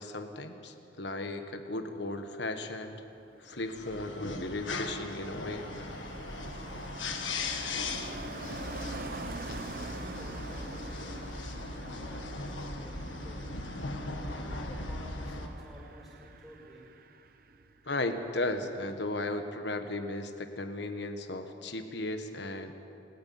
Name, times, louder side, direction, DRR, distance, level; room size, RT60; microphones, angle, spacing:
voice 1, 0.0-3.0 3.4-5.7 17.8-22.7, left 2 dB, 65° left, 7 dB, 1.4 m, -35 dB
Car passing by, 3.1-17.9 18.2-18.5, right 3 dB, 50° right, 0.8 m, -45 dB
sound 1, 3.6-15.5, left 3 dB, 90° left, 1.7 m, -38 dB
voice 2, 7.9-11.3 11.8-13.6 14.3-16.9, equal, ahead, -4 dB, 5.9 m, -52 dB
29.0 x 9.7 x 9.4 m, 2.8 s
head